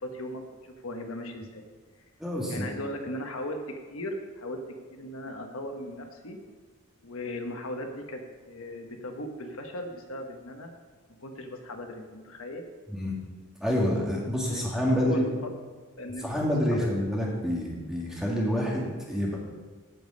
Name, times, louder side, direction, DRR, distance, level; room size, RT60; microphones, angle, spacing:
voice 1, 0.0-1.6 2.5-3.6 3.9-4.6 4.9-6.4 7.0-10.7 11.2-12.6 14.4-15.5 16.0-16.3 16.7-16.9, left 1 dB, 75° left, 4 dB, 1.2 m, -38 dB
voice 2, 2.2-2.7 13.0-13.1 13.6-15.3 16.2-19.4, equal, ahead, -4 dB, 1.9 m, -27 dB
15.0 x 5.2 x 5.3 m, 1.4 s
head